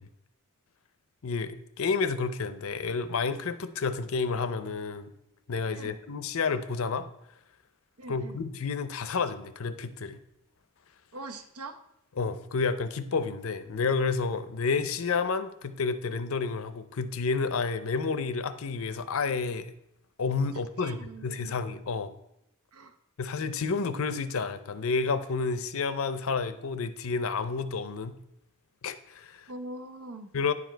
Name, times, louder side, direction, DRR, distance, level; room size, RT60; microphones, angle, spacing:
voice 1, 1.2-5.1 5.5-7.1 8.1-10.2 12.2-19.7 20.2-22.1 23.2-28.1 28.8-29.4 30.3-30.5, left 4 dB, 65° left, 12 dB, 0.6 m, -30 dB
voice 2, 8.0-8.4 11.1-11.8 20.8-21.6 22.7-23.0 29.5-30.3, right 2 dB, 85° right, 8 dB, 0.8 m, -42 dB
9.8 x 4.9 x 4.5 m, 0.81 s
head